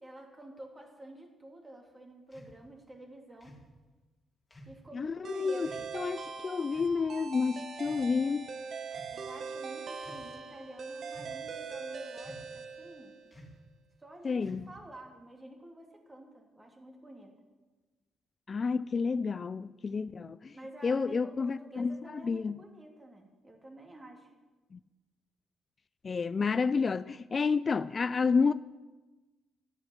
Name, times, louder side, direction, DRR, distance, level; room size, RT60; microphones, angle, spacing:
voice 1, 0.0-3.6 4.7-5.9 9.1-13.2 14.0-17.3 20.5-24.3, right 1 dB, 20° right, 2.9 m, -49 dB
sound 1, 2.3-2.6 3.4-3.7 4.5-4.8 5.6-5.9 6.7-7.0 7.8-8.3 8.9-9.2 9.9-10.3 11.1-11.5 12.2-12.6 13.3-13.6 14.4-14.9, equal, 20° left, 2.5 m, -53 dB
voice 2, 4.9-8.5 14.2-14.7 18.5-20.6 20.8-22.6 24.7-24.8 26.0-28.5, left 5 dB, 35° left, 0.3 m, -30 dB
sound 2, 5.2-13.4, right 5 dB, 55° right, 1.2 m, -42 dB
12.5 x 9.6 x 7.4 m
cardioid pair, 90°, 0 cm